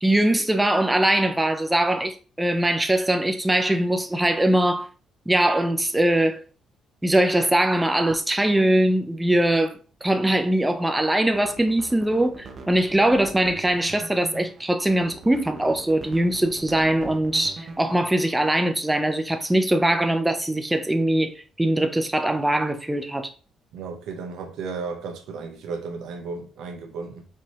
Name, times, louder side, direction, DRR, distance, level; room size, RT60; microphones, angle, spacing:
voice 1, 0.0-4.9 5.3-6.4 7.0-21.3 21.6-23.3, right 1 dB, 10° right, 0.5 m, -22 dB
sound 1, 11.2-18.3, right 3 dB, 50° right, 0.8 m, -42 dB
voice 2, 23.7-27.3, right 4 dB, 85° right, 0.9 m, -34 dB
4.6 x 2.8 x 3.0 m
cardioid pair, 90°, 0 cm